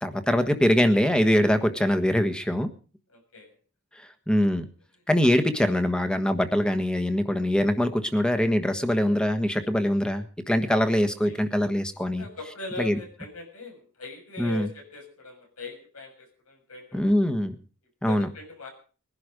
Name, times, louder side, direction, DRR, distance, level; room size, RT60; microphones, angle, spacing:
voice 1, 0.0-2.7 4.3-4.6 5.1-12.2 12.8-12.9 14.4-14.7 16.9-17.6 18.0-18.3, equal, 5° left, 8 dB, 1.3 m, -23 dB
voice 2, 3.1-3.5 10.8-11.4 12.2-17.2 18.0-18.7, left 3 dB, 85° left, 3 dB, 6.6 m, -41 dB
21.0 x 11.0 x 5.1 m, 0.39 s
head